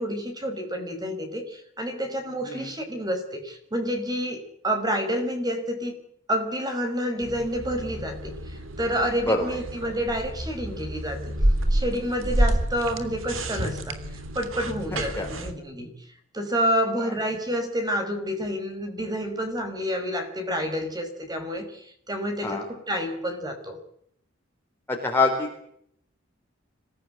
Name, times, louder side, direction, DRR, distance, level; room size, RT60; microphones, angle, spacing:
voice 1, 0.0-5.9 6.3-11.2 11.7-14.0 14.3-15.9 16.3-23.8, equal, 20° right, 5 dB, 5.3 m, -29 dB
sound 1, 7.2-15.5, right 1 dB, 90° right, 3.2 m, -29 dB
voice 2, 14.9-15.3 17.0-17.1 22.4-22.6 24.9-25.5, left 3 dB, 10° left, 0 dB, 4.2 m, -25 dB
26.0 x 17.0 x 9.2 m, 0.68 s
head